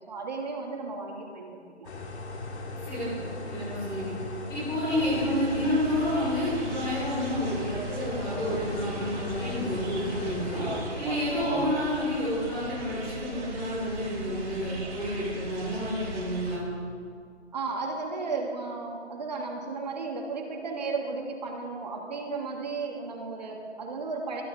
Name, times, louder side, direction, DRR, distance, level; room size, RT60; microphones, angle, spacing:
voice 1, 0.1-1.9 17.5-24.4, right 4 dB, 35° right, 1 dB, 2.1 m, -34 dB
sound 1, 1.8-10.9, left 2 dB, 70° left, 2.6 m, -38 dB
voice 2, 3.5-4.1 4.5-10.6 10.9-16.6, left 1 dB, 10° left, -12 dB, 3.8 m, -29 dB
sound 2, 4.9-16.6, right 2 dB, 85° right, 4.2 m, -38 dB
22.0 x 11.5 x 3.5 m, 2.2 s
hypercardioid pair, 165°, 35 cm